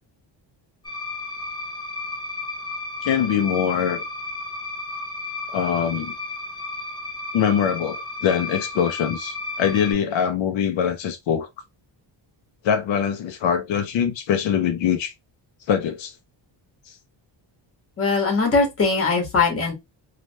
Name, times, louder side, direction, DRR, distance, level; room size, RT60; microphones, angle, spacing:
sound 1, 0.8-9.9, left 2 dB, 10° left, 0.4 m, -33 dB
voice 1, 3.0-4.0 5.5-6.1 7.3-11.5 12.6-15.1 15.7-16.1, left 8 dB, 75° left, 0.6 m, -23 dB
voice 2, 18.0-19.7, left 4 dB, 30° left, 1.1 m, -20 dB
3.2 x 2.4 x 2.6 m
wide cardioid pair, 175°, 46 cm